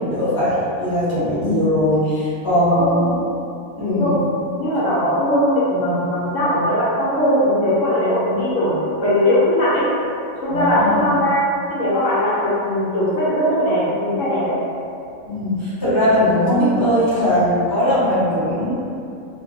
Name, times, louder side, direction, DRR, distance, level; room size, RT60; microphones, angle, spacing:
voice 1, 0.0-3.1 3.8-4.3 10.5-11.1 15.3-18.7, left 1 dB, 20° left, -12 dB, 0.7 m, -19 dB
voice 2, 2.7-3.1 3.9-4.1 4.6-9.9 10.4-11.4 11.7-14.6, left 1 dB, 70° left, -9 dB, 0.9 m, -19 dB
2.3 x 2.2 x 2.5 m, 2.6 s
omnidirectional pair, 1.5 m